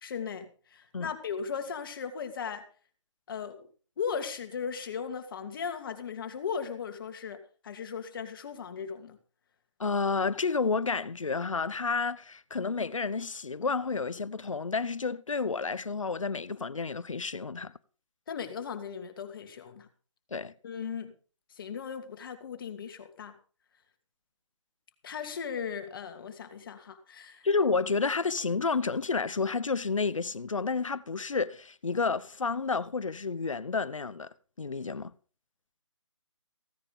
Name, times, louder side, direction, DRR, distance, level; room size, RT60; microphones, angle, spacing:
voice 1, 0.0-2.6 3.3-3.6 4.0-9.2 18.3-19.9 20.6-21.1 21.6-23.3 25.0-27.5, left 6 dB, 45° left, 2.7 m, -37 dB
voice 2, 9.8-17.7 20.3-20.5 27.4-34.3 34.6-35.1, left 4 dB, 85° left, 1.0 m, -30 dB
16.5 x 9.9 x 5.4 m
figure-of-eight pair, 155°, 16 cm